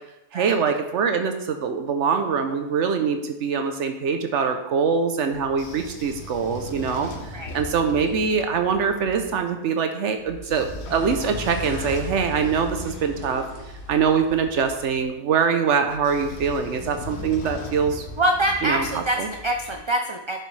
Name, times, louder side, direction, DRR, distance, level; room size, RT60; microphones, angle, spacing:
voice 1, 0.3-13.4 13.9-18.0 18.6-19.3, right 6 dB, 85° right, 6 dB, 1.0 m, -23 dB
Train / Sliding door, 5.3-9.3 10.2-15.0 15.9-19.7, left 3 dB, 70° left, 1.2 m, -38 dB
sound 1, 10.9-14.7, left 1 dB, 40° left, 1.6 m, -38 dB
voice 2, 18.2-20.4, right 1 dB, 35° right, 4 dB, 0.5 m, -25 dB
10.0 x 6.6 x 3.2 m, 0.92 s
omnidirectional pair, 1.2 m